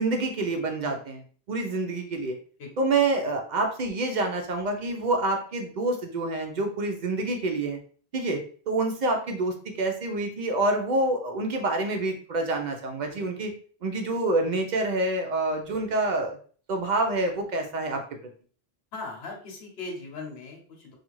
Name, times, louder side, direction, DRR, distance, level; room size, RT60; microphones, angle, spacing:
voice 1, 0.0-2.4 2.8-7.8 8.1-8.4 8.7-13.5 13.8-16.4 16.7-18.0, right 2 dB, 55° right, 3 dB, 0.5 m, -27 dB
voice 2, 18.9-21.0, left 3 dB, 70° left, 0 dB, 1.0 m, -38 dB
2.4 x 2.3 x 3.0 m, 0.44 s
omnidirectional pair, 1.1 m